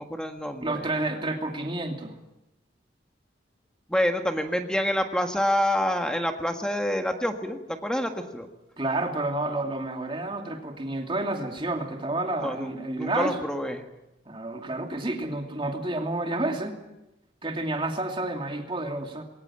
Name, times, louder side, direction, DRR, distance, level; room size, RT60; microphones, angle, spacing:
voice 1, 0.0-0.9 3.9-8.5 12.4-13.8, equal, 5° left, 5 dB, 1.7 m, -27 dB
voice 2, 0.6-2.2 8.8-13.4 14.3-16.8 17.4-19.2, right 2 dB, 30° right, 3 dB, 2.7 m, -30 dB
21.5 x 18.5 x 8.8 m, 0.93 s
head